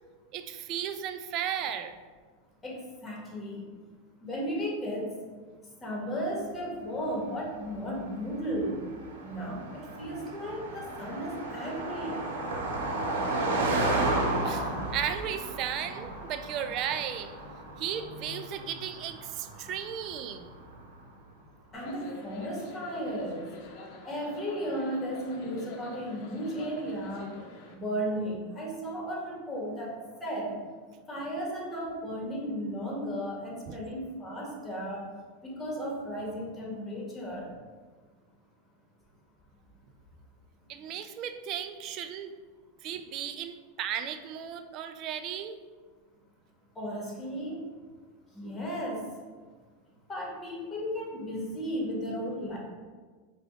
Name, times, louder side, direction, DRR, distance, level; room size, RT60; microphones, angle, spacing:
voice 1, 0.3-1.9 13.4-13.5 14.4-17.3 17.8-20.5 33.7-33.8 40.7-42.4 42.8-45.6, right 9 dB, 45° right, 9 dB, 0.3 m, -35 dB
voice 2, 2.6-3.6 4.2-5.1 5.8-8.8 9.2-12.2 21.7-23.5 24.0-27.3 27.7-29.9 30.2-30.5 31.1-35.1 35.4-37.5 46.7-47.7 48.3-49.0 50.1-52.6, equal, 15° left, -3 dB, 1.3 m, -35 dB
Car passing by, 7.2-20.9, right 2 dB, 85° right, 0.7 m, -34 dB
sound 1, 21.7-27.7, left 2 dB, 55° left, 0.7 m, -46 dB
5.0 x 2.3 x 3.5 m, 1.4 s
supercardioid pair, 120°, 0 cm